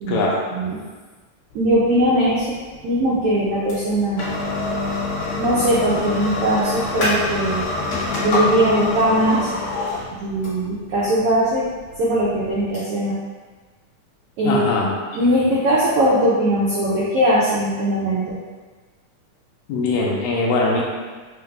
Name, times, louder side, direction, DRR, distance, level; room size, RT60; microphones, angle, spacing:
voice 1, 0.1-0.4 14.4-14.9 19.7-20.8, left 3 dB, 80° left, -2 dB, 1.9 m, -21 dB
sound 1, 1.5-12.7, left 2 dB, 60° left, 2.3 m, -26 dB
voice 2, 1.5-2.6 2.8-4.3 5.4-7.7 8.2-9.5 10.2-11.6 12.0-13.2 14.4-14.6 15.1-18.4, right 1 dB, 85° right, -7 dB, 1.3 m, -20 dB
5.4 x 2.1 x 3.3 m, 1.4 s
omnidirectional pair, 3.5 m